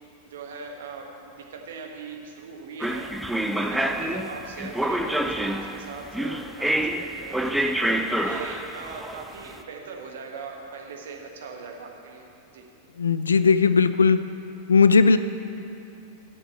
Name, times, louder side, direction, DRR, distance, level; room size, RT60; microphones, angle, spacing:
voice 1, 0.2-3.1 3.5-7.6 8.2-12.3 12.5-12.7, right 5 dB, 60° right, 2 dB, 1.3 m, -40 dB
sound 1, 2.8-9.5, right 1 dB, 5° right, 0.5 m, -27 dB
voice 2, 13.0-14.2 14.7-15.2, left 5 dB, 70° left, 13 dB, 0.4 m, -17 dB
8.7 x 6.8 x 7.9 m, 2.7 s
figure-of-eight pair, 90°, 0 cm